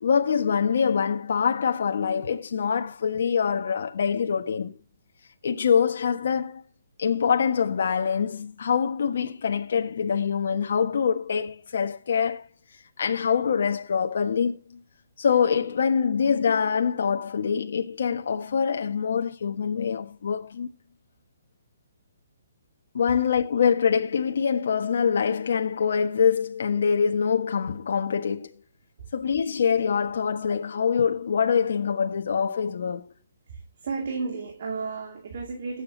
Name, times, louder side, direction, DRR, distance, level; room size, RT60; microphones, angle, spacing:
voice 1, 0.0-4.8 5.4-6.6 7.0-12.5 13.0-14.8 15.2-20.7 22.9-28.5 29.1-33.1, left 6 dB, 65° left, 1.3 m, -24 dB
voice 2, 33.5-35.8, right 4 dB, 50° right, 2.3 m, -33 dB
19.5 x 7.9 x 2.8 m
hypercardioid pair, 165°, 0 cm